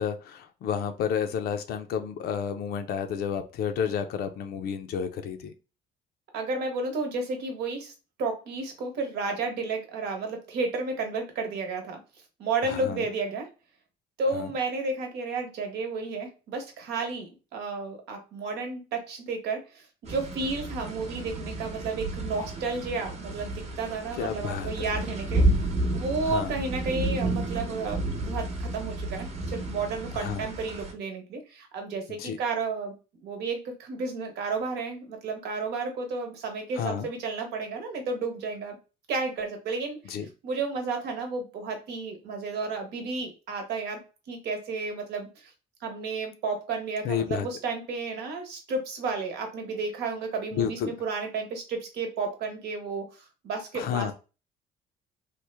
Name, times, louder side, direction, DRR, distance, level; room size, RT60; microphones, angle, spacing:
voice 1, 0.0-5.5 12.6-13.0 14.3-14.5 24.2-24.9 26.2-26.5 30.1-30.4 32.2-32.4 36.8-37.1 40.1-40.3 47.0-47.5 50.5-50.9 53.7-54.1, left 8 dB, 70° left, 7 dB, 0.4 m, -31 dB
voice 2, 6.3-7.9 8.2-12.0 12.4-13.5 14.2-38.8 39.1-44.0 44.3-45.5 45.8-54.1, right 3 dB, 80° right, 4 dB, 1.0 m, -32 dB
sound 1, 20.0-30.9, right 1 dB, 40° right, 0.9 m, -31 dB
3.1 x 2.1 x 3.3 m, 0.31 s
cardioid pair, 110°, 17 cm